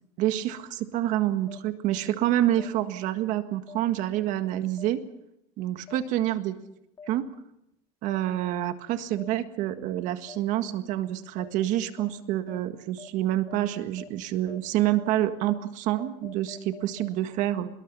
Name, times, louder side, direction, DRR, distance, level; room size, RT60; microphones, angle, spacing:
voice 1, 0.2-5.0 5.6-6.6 7.1-7.3 8.0-17.7, right 13 dB, 60° right, 9 dB, 1.8 m, -27 dB
sound 1, 1.5-1.6 2.6-2.7 3.7-3.8 4.8-4.9 5.9-6.0 7.0-7.1 8.1-8.2 9.2-9.3 10.3-10.4 11.4-11.5 12.0-12.1 12.5-12.6 13.0-13.1 13.5-13.6 14.0-14.1 14.5-14.6 15.0-15.1 15.5-15.6 16.0-17.1, left 5 dB, 30° left, 3.7 m, -44 dB
25.0 x 22.0 x 5.6 m, 0.82 s
cardioid pair, 145°, 15 cm